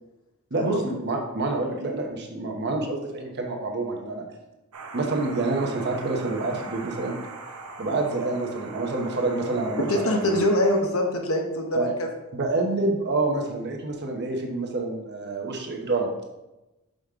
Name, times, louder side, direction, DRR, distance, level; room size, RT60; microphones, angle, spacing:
voice 1, 0.5-4.3 4.9-7.1 7.8-9.9 10.2-10.5 11.7-11.9 12.3-16.1, right 2 dB, 50° right, 2 dB, 0.9 m, -27 dB
sound 1, 4.7-10.8, right 3 dB, 90° right, 0.8 m, -41 dB
voice 2, 9.9-12.1, left 1 dB, 70° left, 3 dB, 1.0 m, -24 dB
5.2 x 5.2 x 3.6 m, 0.99 s
head